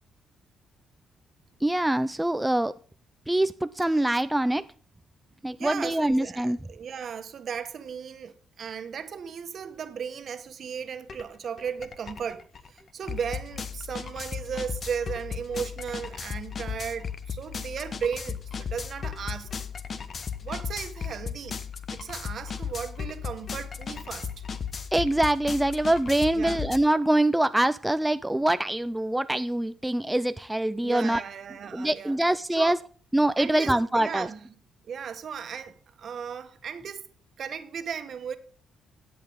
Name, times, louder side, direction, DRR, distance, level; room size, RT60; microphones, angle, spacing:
voice 1, 1.6-2.7 3.3-4.6 5.4-6.6 24.9-31.2 31.7-32.8 33.1-34.3, right 1 dB, 10° right, 0.4 m, -24 dB
voice 2, 5.6-19.5 20.4-21.6 21.9-24.3 26.3-26.6 30.8-32.2 32.5-32.8 33.4-34.5 34.9-37.1 37.4-38.4, right 7 dB, 55° right, 1.4 m, -36 dB
sound 1, 11.1-11.2 11.6-26.8, left 6 dB, 45° left, 1.1 m, -36 dB
14.5 x 8.6 x 3.6 m
cardioid pair, 90°, 0 cm